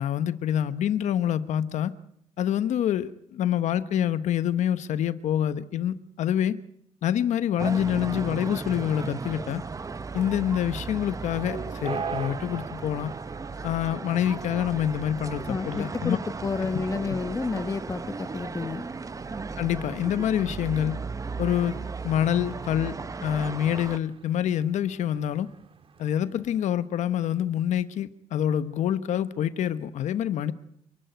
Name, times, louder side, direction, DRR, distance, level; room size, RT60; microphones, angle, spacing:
voice 1, 0.0-1.9 2.4-6.6 7.0-9.6 10.1-13.1 13.6-16.2 19.6-21.0 21.4-21.8 22.0-22.9 23.2-25.5 26.0-30.5, left 10 dB, 80° left, 1.0 m, -26 dB
sound 1, 7.6-24.0, right 4 dB, 30° right, 0.8 m, -36 dB
sound 2, 8.0-26.7, right 6 dB, 50° right, 1.8 m, -44 dB
voice 2, 15.5-18.8, left 4 dB, 30° left, 1.1 m, -30 dB
27.5 x 12.0 x 9.2 m
cardioid pair, 95°, 12 cm